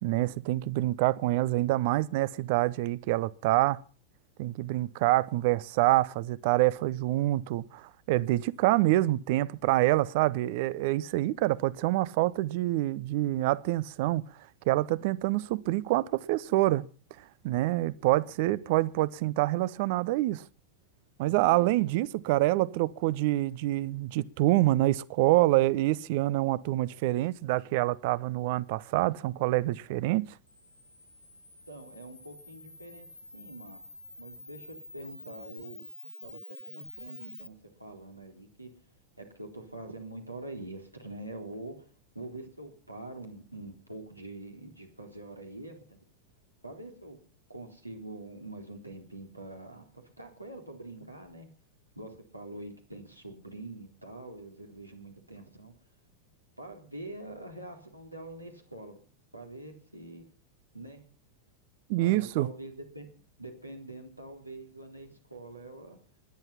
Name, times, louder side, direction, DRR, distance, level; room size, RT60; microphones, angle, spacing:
voice 1, 0.0-3.8 4.4-14.2 14.7-16.9 17.4-20.4 21.2-30.3 61.9-62.5, right 17 dB, 50° right, 0.8 m, -26 dB
voice 2, 21.2-21.9 31.7-33.1 33.3-33.8 34.2-35.9 36.2-38.7 39.2-41.9 42.1-46.0 46.6-47.2 47.5-51.5 52.0-55.7 56.6-59.0 59.3-60.2 60.7-61.1 62.0-63.1 63.4-66.0, right 2 dB, 85° right, 3.8 m, -45 dB
Camera, 30.5-37.5, left 2 dB, 85° left, 1.2 m, -48 dB
20.5 x 11.0 x 5.8 m
figure-of-eight pair, 90°, 0 cm